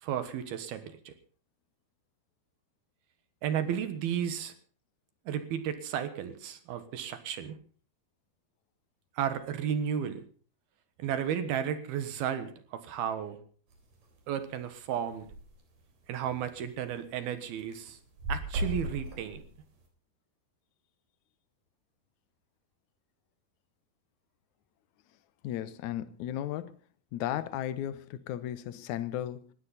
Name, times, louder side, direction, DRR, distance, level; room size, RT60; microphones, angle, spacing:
voice 1, 0.0-1.1 3.4-4.5 5.3-7.6 9.2-10.2 11.0-13.4 14.3-15.3 16.1-18.0 18.3-19.4, right 9 dB, 75° right, 3.3 m, -33 dB
sound 1, 13.7-14.0 14.4-14.5 14.7-14.8 15.1-15.5 16.0-16.1 16.5-17.3 17.6-19.8, right 1 dB, 60° right, 5.0 m, -36 dB
voice 2, 25.4-26.8 27.1-29.5, left 11 dB, 75° left, 1.8 m, -35 dB
20.0 x 15.5 x 4.1 m
omnidirectional pair, 4.5 m